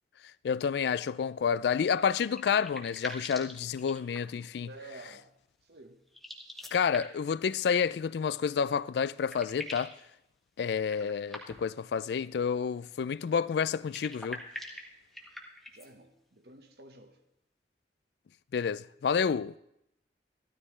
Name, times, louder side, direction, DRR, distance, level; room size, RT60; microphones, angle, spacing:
voice 1, 0.4-4.7 6.7-9.9 10.6-14.4 18.5-19.5, left 6 dB, 70° left, 0.3 m, -29 dB
sound 1, 1.9-4.4 6.1-7.3 8.7-8.8 9.0-10.0 10.8-11.8 13.7-15.9, left 1 dB, ahead, 1.3 m, -44 dB
voice 2, 4.6-6.0 11.0-11.1 15.7-17.2, right 2 dB, 65° right, 1.2 m, -51 dB
14.0 x 13.0 x 3.2 m
head